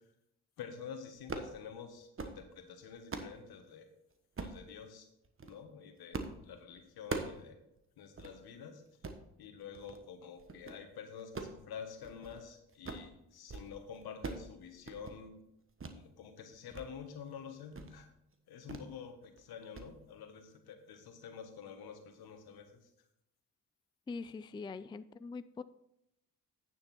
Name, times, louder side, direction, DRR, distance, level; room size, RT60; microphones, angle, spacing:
voice 1, 0.6-3.9 4.4-5.1 5.4-7.6 8.0-8.8 9.4-15.4 15.9-18.1 18.5-22.8, left 7 dB, 70° left, 6 dB, 1.5 m, -48 dB
sound 1, 1.2-1.5 2.0-2.4 2.8-3.4 4.4-4.6 5.2-5.6 6.1-6.4 6.7-7.4 7.8-7.9 8.2-8.3 8.9-9.2 9.7-10.0 10.4-10.8 11.2-12.4 12.7-13.1 13.4-13.7 13.9-14.5 14.8-15.2 15.8-16.0 16.4-16.9 17.2-17.3 17.7-18.0 18.7-18.9 19.2-19.4 19.7-19.9, right 3 dB, 35° right, 1.3 m, -42 dB
voice 2, 24.1-25.6, left 4 dB, 15° left, 14 dB, 0.4 m, -43 dB
9.4 x 7.1 x 4.3 m, 0.80 s
supercardioid pair, 55°, 38 cm